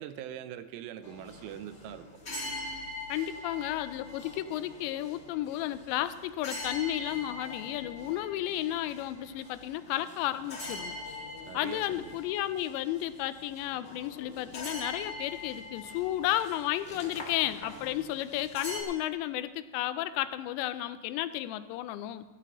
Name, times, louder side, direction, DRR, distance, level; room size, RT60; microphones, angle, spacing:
voice 1, 0.0-2.1 11.5-12.2, right 10 dB, 85° right, 11 dB, 2.8 m, -42 dB
sound 1, 1.0-18.8, left 2 dB, 75° left, 0.6 m, -43 dB
voice 2, 3.1-11.0 11.5-22.3, left 13 dB, 90° left, 13 dB, 2.9 m, -33 dB
17.5 x 13.5 x 3.0 m, 1.2 s
omnidirectional pair, 5.0 m